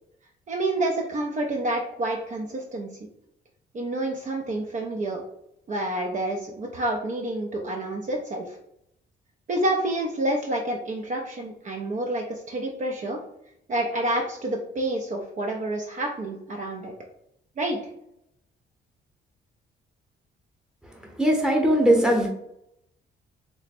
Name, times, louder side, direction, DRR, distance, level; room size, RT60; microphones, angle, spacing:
voice 1, 0.5-2.9 3.7-5.2 5.7-8.6 9.5-13.2 13.7-16.9 17.6-17.8, right 1 dB, 40° right, 1 dB, 0.5 m, -28 dB
voice 2, 21.2-22.3, right 1 dB, 5° right, 0 dB, 0.9 m, -19 dB
3.2 x 2.1 x 4.1 m, 0.77 s
cardioid pair, 90°, 20 cm